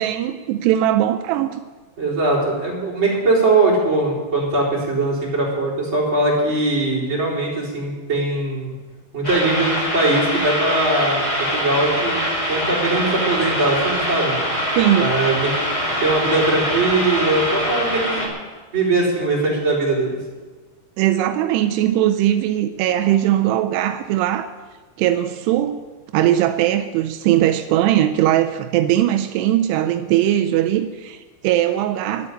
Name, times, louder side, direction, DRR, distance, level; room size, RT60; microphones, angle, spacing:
voice 1, 0.0-1.6 14.8-15.2 21.0-24.5 25.0-25.8 26.1-32.3, right 12 dB, 90° right, 8 dB, 2.4 m, -19 dB
voice 2, 2.0-8.7 9.1-12.2 12.5-14.4 15.0-15.6 16.0-18.3 18.7-20.2, right 2 dB, 25° right, -5 dB, 4.2 m, -20 dB
sound 1, 9.2-18.3, equal, 30° left, 0.6 m, -23 dB
12.0 x 8.4 x 9.9 m, 1.3 s
omnidirectional pair, 5.4 m